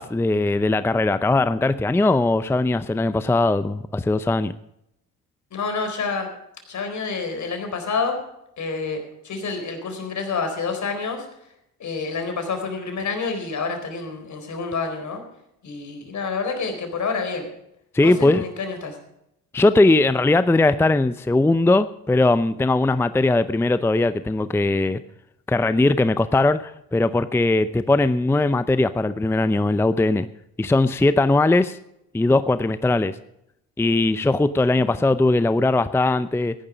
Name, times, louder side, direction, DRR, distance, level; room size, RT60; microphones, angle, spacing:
voice 1, 0.0-4.5 17.9-18.4 19.5-25.0 25.5-30.3 30.6-31.8 32.1-33.2 33.8-36.5, left 2 dB, 5° left, 13 dB, 0.6 m, -19 dB
voice 2, 5.5-6.3 6.7-8.2 8.6-11.3 11.8-15.2 15.6-17.5 18.0-19.0 34.7-35.0, left 4 dB, 50° left, 6 dB, 4.2 m, -28 dB
15.0 x 10.5 x 5.0 m, 0.80 s
supercardioid pair, 70°, 37 cm